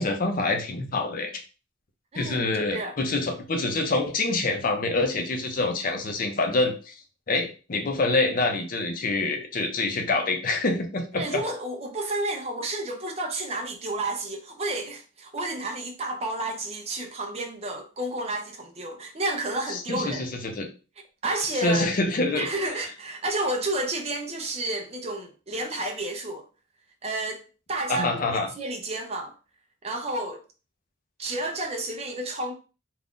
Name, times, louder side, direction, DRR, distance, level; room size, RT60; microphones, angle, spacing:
voice 1, 0.0-1.3 2.2-6.9 7.3-11.4 19.7-20.7 21.5-22.5 27.9-28.5, left 2 dB, 45° left, 0.5 m, -26 dB
voice 2, 2.1-2.9 11.1-20.3 21.2-21.9 22.3-26.5 27.0-29.3 29.8-30.4 31.2-32.5, right 2 dB, 30° right, 0.5 m, -31 dB
2.6 x 2.3 x 3.5 m
head